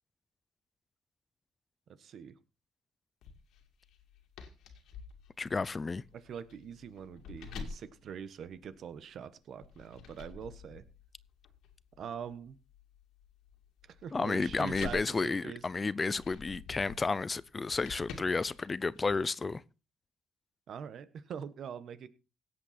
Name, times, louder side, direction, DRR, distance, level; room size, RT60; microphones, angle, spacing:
voice 1, 2.0-2.3 6.1-10.8 12.0-12.6 14.0-15.6 20.7-22.1, right 7 dB, 65° right, 1.3 m, -43 dB
sound 1, 3.2-9.0 9.6-19.1, left 5 dB, 85° left, 2.4 m, -49 dB
voice 2, 5.4-6.0 14.1-19.6, left 4 dB, 30° left, 0.5 m, -32 dB
17.0 x 7.9 x 4.3 m
cardioid pair, 90°, 0 cm